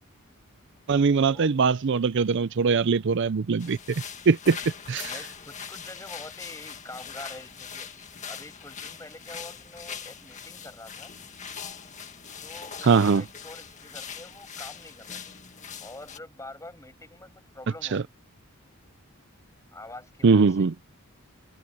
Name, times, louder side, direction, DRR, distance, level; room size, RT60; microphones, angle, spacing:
voice 1, 0.9-3.8 4.3-4.6 4.9-5.1 12.8-13.2 17.9-18.0 20.2-20.7, right 5 dB, 55° right, 0.5 m, -21 dB
sound 1, 3.6-16.2, left 7 dB, 35° left, 1.9 m, -41 dB
voice 2, 5.0-11.1 12.4-15.2 15.8-18.1 19.7-20.7, left 2 dB, 15° left, 7.0 m, -45 dB
head